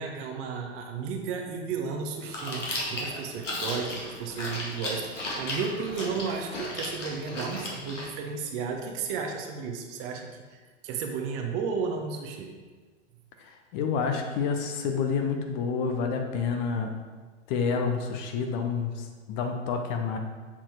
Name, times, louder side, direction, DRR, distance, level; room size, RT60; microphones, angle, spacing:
voice 1, 0.0-12.5, right 5 dB, 35° right, 3 dB, 1.0 m, -33 dB
Chewing mastication, 2.2-8.1, left 1 dB, 80° left, 1.9 m, -35 dB
voice 2, 13.4-16.9 17.5-20.2, left 5 dB, 40° left, 4 dB, 0.9 m, -29 dB
7.3 x 4.4 x 4.5 m, 1.4 s
figure-of-eight pair, 100°, 36 cm